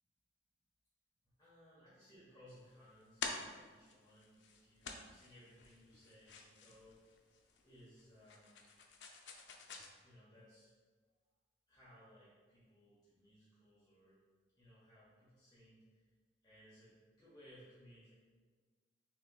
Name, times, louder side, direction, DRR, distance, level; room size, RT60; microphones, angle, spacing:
voice 1, 1.4-7.0 7.6-8.6 10.0-10.7 11.7-14.2 14.6-16.0 16.4-18.1, equal, 25° left, -10 dB, 1.1 m, -62 dB
sound 1, 2.5-9.9, left 4 dB, 70° left, 0.5 m, -49 dB
6.3 x 2.9 x 2.3 m, 1.5 s
head